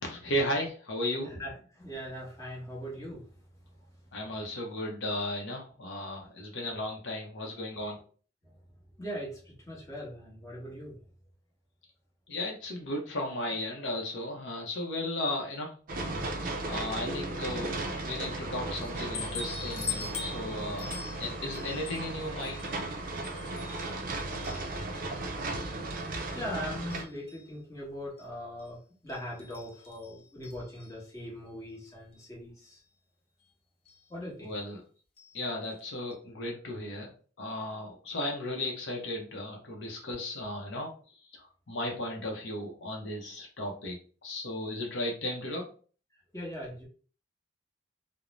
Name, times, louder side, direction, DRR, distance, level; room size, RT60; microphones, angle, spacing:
voice 1, 0.0-1.3 4.1-8.0 12.3-15.7 16.7-17.7 18.0-20.9 21.2-22.6 34.4-34.8 35.3-37.1 37.4-40.9 41.4-44.0 44.2-45.7, left 1 dB, 70° left, 0 dB, 0.6 m, -35 dB
voice 2, 1.2-3.2 8.4-8.5 9.0-11.0 26.1-28.8 29.0-32.8 34.1-34.5 46.3-46.9, equal, 15° left, -4 dB, 0.9 m, -40 dB
sound 1, 15.9-27.0, right 2 dB, 50° right, 0.4 m, -36 dB
sound 2, 18.8-25.1 25.5-26.5 26.9-27.5 28.2-28.3 28.6-28.7 29.1-31.1 32.1-32.2 32.6-32.7 33.9-34.1 35.2-35.4 35.7-35.8 36.1-36.2, left 5 dB, 30° left, 0.5 m, -43 dB
2.5 x 2.0 x 3.0 m, 0.40 s
head